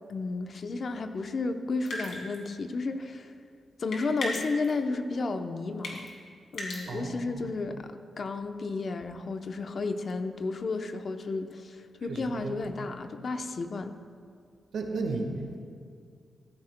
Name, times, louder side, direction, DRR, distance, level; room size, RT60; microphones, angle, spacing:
voice 1, 0.1-3.3 3.8-6.1 6.5-13.9, left 3 dB, 55° left, 7 dB, 0.7 m, -32 dB
sound 1, 1.9-2.5 3.9-4.7 5.8-6.1 6.5-6.8, left 2 dB, 75° left, 2.6 m, -35 dB
voice 2, 6.9-7.5 12.0-12.6 14.7-15.6, right 3 dB, 80° right, 3 dB, 1.4 m, -34 dB
14.0 x 14.0 x 2.2 m, 2.2 s
cardioid pair, 75°, 0 cm